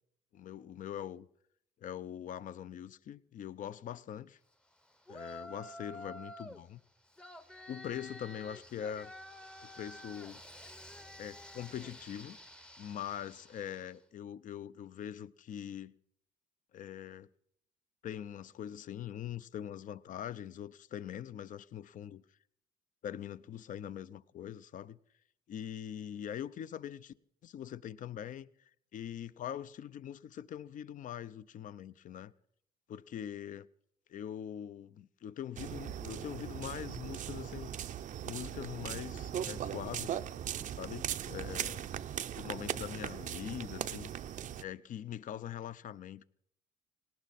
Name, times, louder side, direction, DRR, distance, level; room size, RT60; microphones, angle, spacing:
voice 1, 0.3-1.3 1.8-4.4 5.1-6.8 7.7-9.1 9.8-10.4 11.2-12.4 12.8-15.9 16.7-17.3 18.0-22.2 23.0-25.0 25.5-27.1 27.4-28.5 28.9-32.3 32.9-33.7 34.1-37.7 38.2-40.2 40.8-41.8 42.4-46.3, left 10 dB, 50° left, 0.6 m, -43 dB
Yell, 5.1-6.6 7.2-13.9, equal, 5° left, 0.7 m, -50 dB
sound 1, 35.6-44.6, right 10 dB, 50° right, 0.6 m, -39 dB
18.5 x 18.0 x 4.2 m
cardioid pair, 110°, 17 cm